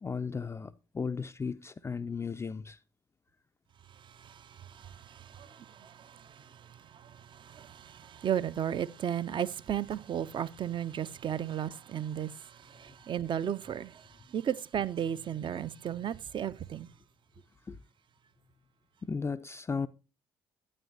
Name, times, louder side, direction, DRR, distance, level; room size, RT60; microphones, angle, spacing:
voice 1, 0.0-2.8 17.7-17.8 19.0-19.9, left 5 dB, 20° left, 0.4 m, -35 dB
voice 2, 4.1-16.9, right 9 dB, 35° right, 0.5 m, -35 dB
12.0 x 8.6 x 2.6 m
figure-of-eight pair, 50°, 13 cm